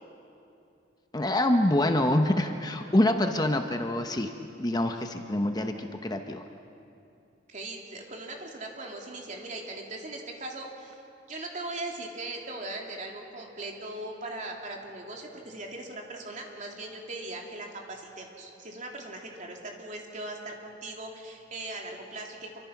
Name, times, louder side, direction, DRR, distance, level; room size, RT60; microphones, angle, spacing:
voice 1, 1.1-6.4, left 1 dB, 20° left, 5 dB, 0.9 m, -26 dB
voice 2, 7.5-11.0 11.3-22.6, right 2 dB, 40° right, 0 dB, 3.1 m, -39 dB
28.0 x 24.5 x 6.0 m, 2.6 s
head